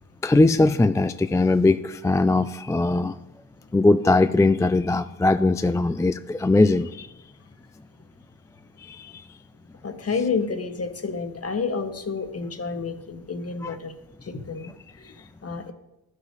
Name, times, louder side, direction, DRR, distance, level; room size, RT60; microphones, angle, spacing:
voice 1, 0.2-3.2 3.7-7.1 8.8-9.2 13.6-13.7, left 2 dB, 10° left, 10 dB, 0.3 m, -20 dB
voice 2, 9.8-13.9 14.2-15.1 15.4-15.7, left 4 dB, 40° left, 7 dB, 1.3 m, -30 dB
13.0 x 4.8 x 3.3 m, 0.90 s
supercardioid pair, 45°, 37 cm